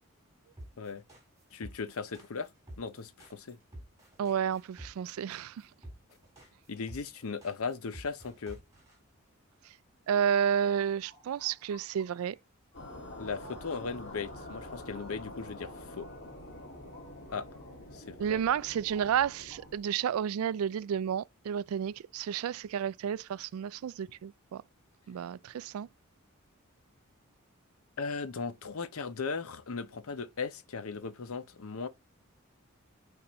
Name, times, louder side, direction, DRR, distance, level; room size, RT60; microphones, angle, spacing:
sound 1, 0.6-9.0, right 1 dB, 15° right, 3.9 m, -49 dB
voice 1, 1.5-2.5 2.8-3.6 6.7-8.6 13.2-16.1 17.3-17.5 17.9-18.4 28.0-31.9, left 4 dB, 85° left, 0.7 m, -37 dB
voice 2, 4.2-5.7 10.1-12.4 18.2-24.6 25.1-25.9, right 8 dB, 80° right, 0.3 m, -31 dB
sound 2, 10.3-12.4 12.7-17.9 18.2-20.0, left 1 dB, 10° left, 1.9 m, -59 dB
sound 3, 12.7-19.8, left 1 dB, 50° left, 1.9 m, -46 dB
8.7 x 3.7 x 3.0 m
head